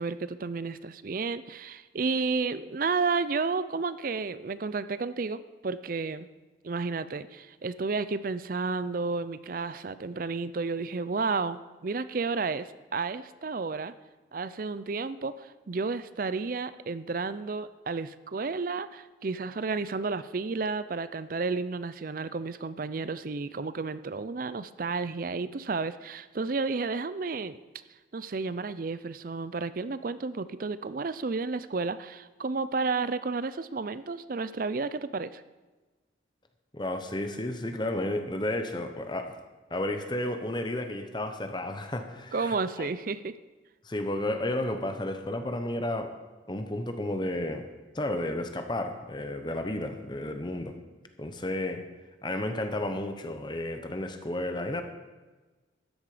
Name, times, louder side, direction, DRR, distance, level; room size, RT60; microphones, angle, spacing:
voice 1, 0.0-6.3 6.6-12.7 12.9-13.9 14.3-27.6 28.1-35.4 42.3-43.4, right 4 dB, 45° right, 14 dB, 0.5 m, -32 dB
voice 2, 36.7-39.4 39.7-42.9 43.8-46.1 46.5-47.7 47.9-50.8 51.2-51.8 52.2-54.8, left 1 dB, 25° left, 6 dB, 0.9 m, -32 dB
13.5 x 10.5 x 5.0 m, 1.2 s
head